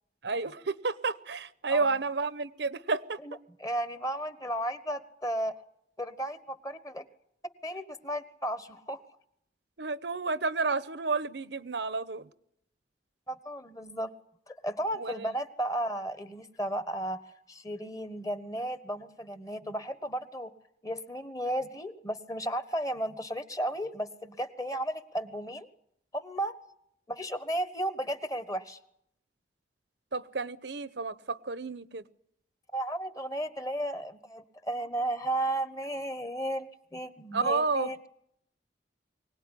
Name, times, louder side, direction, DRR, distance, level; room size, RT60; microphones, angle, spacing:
voice 1, 0.2-3.2 9.8-12.3 15.0-15.3 30.1-32.0 37.3-37.9, right 4 dB, 75° right, 0.9 m, -31 dB
voice 2, 3.6-5.5 6.0-7.0 7.6-9.0 13.3-14.1 14.5-17.2 17.5-20.5 20.8-25.7 26.1-26.6 27.1-28.8 32.7-38.0, right 1 dB, 20° left, 1.3 m, -34 dB
24.0 x 18.0 x 10.0 m
head